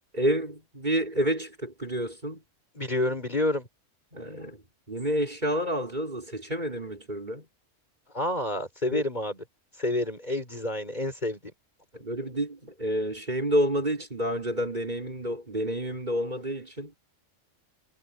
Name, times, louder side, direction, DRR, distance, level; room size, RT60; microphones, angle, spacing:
voice 1, 0.1-2.4 4.1-4.6 4.9-7.4 8.9-9.0 11.9-16.9, equal, 35° right, 5.5 m, -29 dB
voice 2, 2.7-3.7 8.1-9.4 9.8-11.4, left 1 dB, 35° left, 6.3 m, -28 dB
omnidirectional pair, 1.3 m